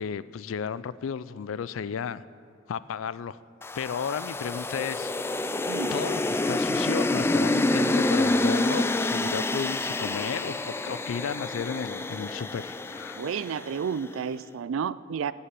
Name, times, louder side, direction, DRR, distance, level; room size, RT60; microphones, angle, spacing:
voice 1, 0.0-2.2 2.7-3.4 3.8-5.1 5.9-13.2, left 7 dB, 80° left, 17 dB, 0.4 m, -33 dB
sound 1, 3.6-14.0, left 2 dB, 10° left, 0.3 m, -27 dB
voice 2, 13.2-15.3, right 7 dB, 75° right, 18 dB, 0.4 m, -31 dB
16.5 x 5.7 x 7.6 m, 2.5 s
head